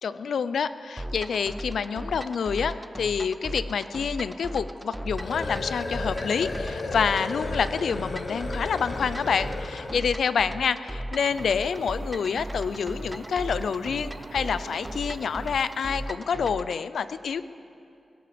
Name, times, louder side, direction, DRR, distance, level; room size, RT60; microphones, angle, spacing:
voice 1, 0.0-17.4, left 6 dB, 85° left, 14 dB, 0.4 m, -27 dB
sound 1, 1.0-16.8, right 1 dB, 10° right, 0.4 m, -37 dB
sound 2, 5.0-10.1, left 3 dB, 50° left, 1.2 m, -34 dB
sound 3, 11.2-16.2, right 4 dB, 80° right, 0.9 m, -47 dB
17.5 x 16.0 x 5.1 m, 2.7 s
wide cardioid pair, 155°, 0 cm